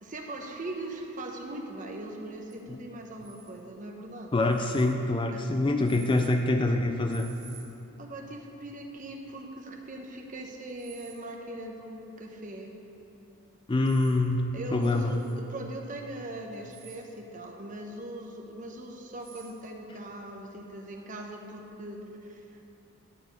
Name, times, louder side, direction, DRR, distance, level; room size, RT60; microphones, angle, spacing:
voice 1, 0.0-4.6 5.3-5.7 8.0-12.7 14.5-22.5, right 1 dB, 35° right, 2 dB, 0.8 m, -40 dB
sound 1, 2.5-2.6 3.2-3.5 4.4-4.9 5.8-6.3 7.1-7.6 10.7-11.3 13.7-14.2 14.8-15.3 16.5-17.0 19.2-19.5, right 7 dB, 70° right, 1.6 m, -52 dB
voice 2, 4.3-7.3 13.7-15.1, left 2 dB, 20° left, 5 dB, 0.3 m, -25 dB
11.5 x 4.1 x 8.0 m, 3.0 s
head